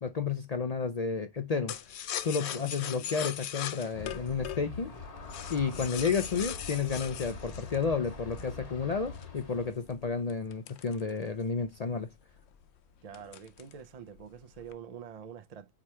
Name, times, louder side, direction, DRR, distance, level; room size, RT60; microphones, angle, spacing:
voice 1, 0.0-1.7 2.2-4.9 5.5-12.1, left 5 dB, 50° left, 0.5 m, -31 dB
sound 1, 1.7-8.6 9.1-11.6 12.0-12.1 12.4-12.7 13.1-13.9 14.2-14.7, left 10 dB, 65° left, 0.8 m, -40 dB
voice 2, 2.4-3.0 5.7-6.0 13.0-15.7, right 8 dB, 45° right, 0.5 m, -47 dB
Aircraft, 3.9-9.7, left 3 dB, 35° left, 0.9 m, -44 dB
4.8 x 4.8 x 4.2 m
omnidirectional pair, 1.3 m